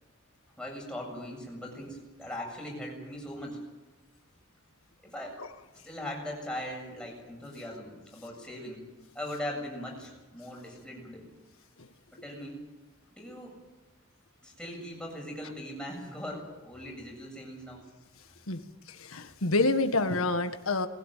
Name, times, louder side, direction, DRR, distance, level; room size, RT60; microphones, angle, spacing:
voice 1, 0.6-3.6 5.0-5.4 5.8-8.8 9.1-11.3 12.1-12.6 13.2-13.6 14.4-17.8, left 1 dB, 5° left, -1 dB, 7.6 m, -40 dB
voice 2, 18.5-20.9, left 2 dB, 80° left, 9 dB, 1.6 m, -28 dB
20.5 x 17.0 x 9.3 m, 1.1 s
head